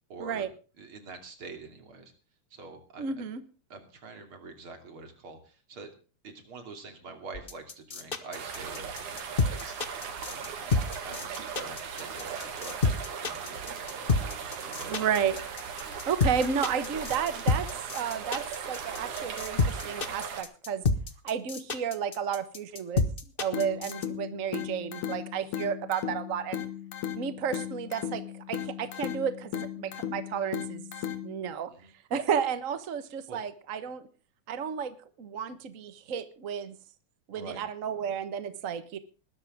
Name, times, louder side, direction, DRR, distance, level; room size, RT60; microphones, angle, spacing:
voice 1, 0.1-0.5 0.8-2.1 2.5-3.3 3.7-5.9 6.2-15.1 23.7-23.8 31.7-31.9 33.3-33.4 37.3-37.6, right 3 dB, 45° right, 6 dB, 3.5 m, -46 dB
voice 2, 3.0-3.4 14.8-15.4 16.1-20.8 21.2-23.0 23.4-26.6 27.2-28.2 28.5-30.9 31.2-31.7 32.1-34.1 34.5-36.7 37.3-39.0, right 7 dB, 60° right, 12 dB, 0.8 m, -32 dB
sound 1, 7.3-24.1, left 3 dB, 65° left, 0.5 m, -28 dB
sound 2, 8.3-20.4, right 6 dB, 90° right, 3.8 m, -38 dB
sound 3, 23.5-31.5, left 10 dB, 85° left, 3.0 m, -37 dB
20.5 x 12.5 x 3.6 m, 0.36 s
omnidirectional pair, 3.4 m